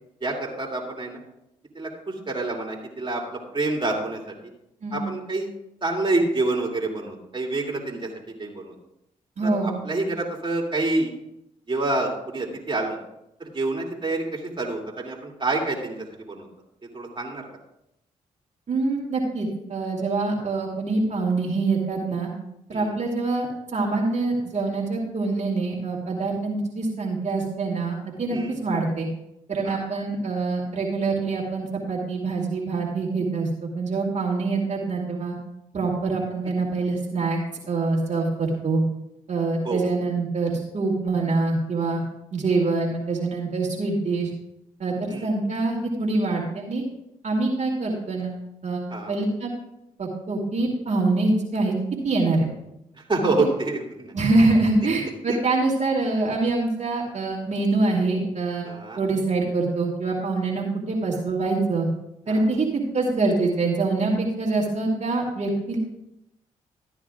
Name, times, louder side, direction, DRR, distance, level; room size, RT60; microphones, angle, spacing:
voice 1, 0.2-1.2 1.7-4.3 4.9-5.5 5.8-8.1 8.4-8.7 9.4-11.1 11.7-13.0 13.4-16.5 16.9-17.5 22.7-23.0 28.3-28.6 29.6-29.8 39.6-39.9 45.0-45.3 48.9-49.1 53.1-54.1 55.3-55.4 58.6-59.0 62.3-62.5, right 2 dB, 30° right, -1 dB, 2.6 m, -27 dB
voice 2, 9.4-9.7 18.7-22.3 22.7-29.1 29.5-33.5 33.7-35.4 35.7-37.4 37.7-38.8 39.3-42.0 42.3-44.3 44.8-46.8 47.2-48.3 48.6-49.6 50.0-51.7 52.0-52.5 54.1-58.7 59.0-61.9 62.3-65.8, right 3 dB, 50° right, -2 dB, 2.4 m, -25 dB
13.5 x 9.6 x 2.4 m, 0.83 s
supercardioid pair, 45°, 15 cm